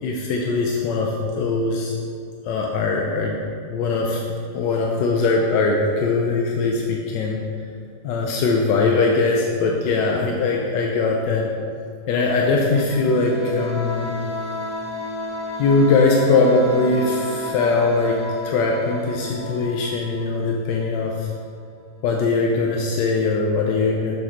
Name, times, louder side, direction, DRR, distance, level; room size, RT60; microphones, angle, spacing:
voice 1, 0.0-1.9 2.4-3.4 3.7-4.2 4.5-7.4 8.0-11.5 12.1-14.1 15.6-18.2 18.4-21.3 22.0-24.2, left 3 dB, 75° left, 0 dB, 1.0 m, -21 dB
sound 1, 12.5-21.1, left 1 dB, 25° right, 0.9 m, -32 dB
7.0 x 6.4 x 3.0 m, 2.3 s
omnidirectional pair, 2.4 m